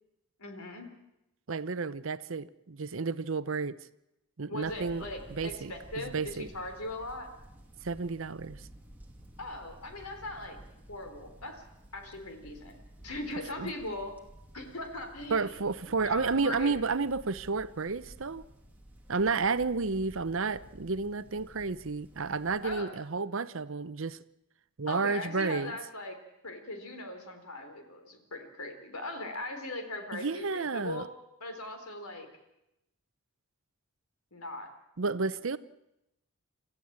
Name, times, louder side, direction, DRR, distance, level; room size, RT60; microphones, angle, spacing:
voice 1, 0.4-0.9 4.5-7.3 9.4-10.6 10.9-11.6 11.9-12.7 13.0-14.1 14.5-15.5 16.0-16.8 22.6-22.9 24.9-26.2 26.4-31.1 31.4-32.3 34.3-34.7, left 2 dB, 80° left, 3.8 m, -39 dB
voice 2, 1.5-3.8 4.4-5.0 5.4-6.5 7.8-8.6 13.6-13.7 15.3-18.4 19.1-24.2 24.8-25.8 30.1-31.0 35.0-35.6, right 4 dB, 60° right, 0.8 m, -31 dB
sound 1, 4.6-22.8, right 1 dB, 10° right, 2.5 m, -53 dB
28.5 x 14.0 x 8.8 m
head